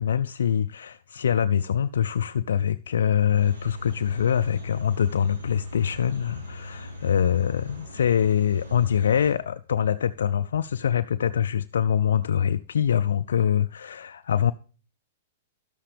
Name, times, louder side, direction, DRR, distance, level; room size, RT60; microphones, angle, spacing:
voice 1, 0.0-14.5, left 8 dB, 75° left, 0.3 m, -24 dB
sound 1, 3.3-9.3, left 1 dB, 85° right, 4.0 m, -39 dB
12.0 x 7.4 x 3.4 m
hypercardioid pair, 115°, 0 cm